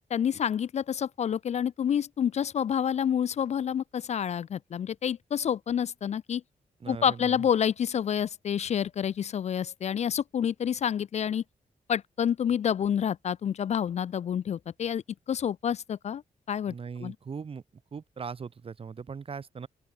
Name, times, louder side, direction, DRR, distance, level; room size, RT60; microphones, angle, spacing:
voice 1, 0.1-6.4 6.9-11.4 11.9-15.0 15.3-16.2 16.5-16.7 17.0-17.1, left 8 dB, 50° left, 0.4 m, -28 dB
voice 2, 6.8-7.5 16.7-17.6 17.9-19.7, right 5 dB, 40° right, 1.0 m, -39 dB
open air
wide cardioid pair, 120°, 15 cm